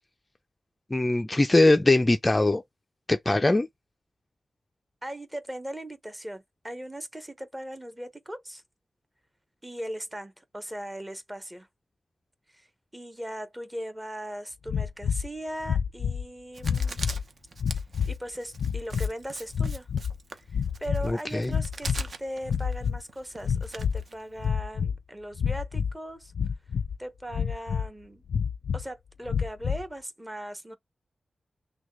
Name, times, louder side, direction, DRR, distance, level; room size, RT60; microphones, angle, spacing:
voice 1, 0.9-2.6 3.1-3.7 21.1-21.5, left 2 dB, 15° left, 0.4 m, -21 dB
voice 2, 5.0-8.6 9.6-11.7 12.5-17.0 18.0-19.9 20.5-26.3 27.0-28.2 28.7-30.8, equal, 10° right, 0.9 m, -39 dB
sound 1, 14.7-15.3 15.6-16.3 16.6-17.2 17.6-18.2 18.6-19.1 19.5-20.2 20.5-21.1 21.4-22.1 22.4-23.0 23.4-24.0 24.4-25.0 25.4-25.9 26.4-27.0 27.3-27.9 28.3-28.8 29.3-29.8, left 7 dB, 80° left, 0.4 m, -28 dB
Writing, 16.5-24.5, right 4 dB, 50° right, 0.8 m, -42 dB
6.2 x 2.3 x 3.1 m
wide cardioid pair, 150°, 0 cm